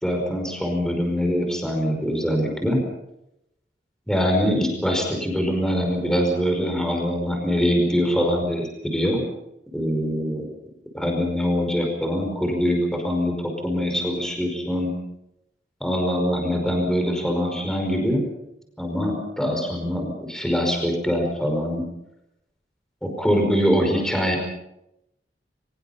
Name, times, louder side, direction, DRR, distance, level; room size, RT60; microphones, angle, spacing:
voice 1, 0.0-2.8 4.1-9.2 9.7-10.4 10.9-14.9 15.8-18.2 18.8-21.8 23.0-24.4, equal, 5° left, 2 dB, 5.1 m, -23 dB
24.0 x 22.0 x 5.6 m, 0.85 s
head